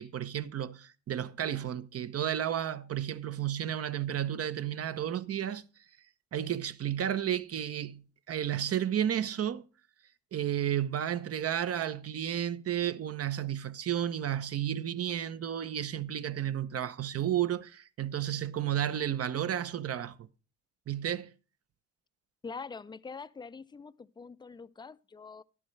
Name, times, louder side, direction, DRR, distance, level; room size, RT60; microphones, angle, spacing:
voice 1, 0.0-5.6 6.3-9.6 10.3-20.3 20.9-21.3, right 10 dB, 50° right, 0.9 m, -32 dB
voice 2, 22.4-25.4, left 5 dB, 15° left, 0.5 m, -44 dB
12.5 x 11.5 x 3.3 m
cardioid pair, 90°, 30 cm